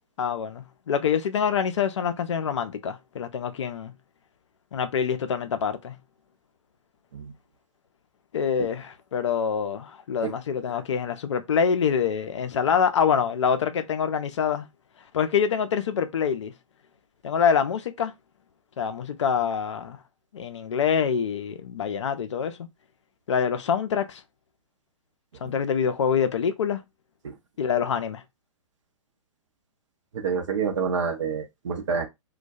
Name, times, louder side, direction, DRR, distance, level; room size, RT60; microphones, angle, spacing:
voice 1, 0.2-3.9 4.7-5.9 8.3-14.7 15.1-16.5 17.2-18.1 18.8-20.0 20.3-22.6 23.3-24.2 25.4-26.8 27.6-28.2, left 7 dB, 60° left, 0.4 m, -25 dB
voice 2, 30.1-32.1, right 6 dB, 60° right, 0.7 m, -28 dB
2.2 x 2.2 x 2.6 m
figure-of-eight pair, 115°, 18 cm